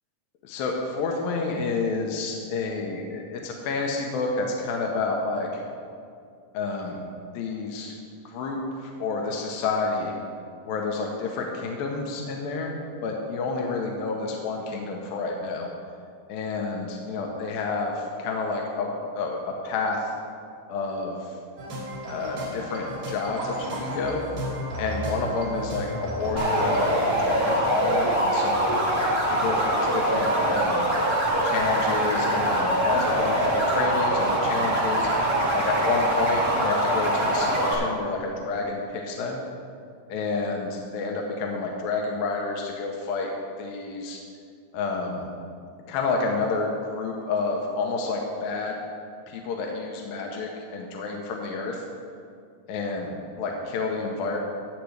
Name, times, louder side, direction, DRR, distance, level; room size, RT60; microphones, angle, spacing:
voice 1, 0.4-5.6 6.5-7.0 7.3-8.0 8.3-10.1 10.6-15.7 16.3-20.1 20.7-21.4 22.1-24.2 24.8-28.7 29.3-30.9 31.4-35.1 35.5-39.4 40.1-43.3 43.6-44.2 44.7-45.3 45.9-48.8 49.3-51.8 52.7-53.1 53.4-54.4, left 3 dB, 85° left, 0 dB, 2.6 m, -29 dB
sound 1, 21.6-26.8, right 1 dB, 70° right, 4.3 m, -33 dB
sound 2, 26.3-37.7, right 1 dB, 30° right, 1.0 m, -23 dB
15.0 x 8.1 x 3.3 m, 2.3 s
omnidirectional pair, 4.1 m